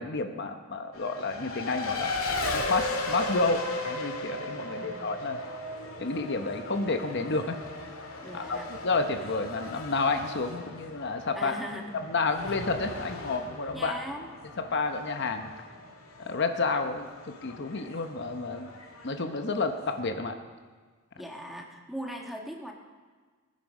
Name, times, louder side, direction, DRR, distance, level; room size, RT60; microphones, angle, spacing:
voice 1, 0.0-2.1 2.5-5.4 6.0-7.6 8.3-11.5 11.9-13.9 14.6-15.5 16.2-18.7 19.0-20.4, left 3 dB, 55° left, 6 dB, 0.9 m, -30 dB
Race car auto racing, 0.9-20.1, left 2 dB, 80° left, 2.1 m, -37 dB
voice 2, 4.7-5.1 8.2-8.7 11.3-12.1 12.5-12.6 13.7-14.3 21.2-22.7, equal, ahead, 1 dB, 1.4 m, -39 dB
20.5 x 9.4 x 5.3 m, 1.5 s
head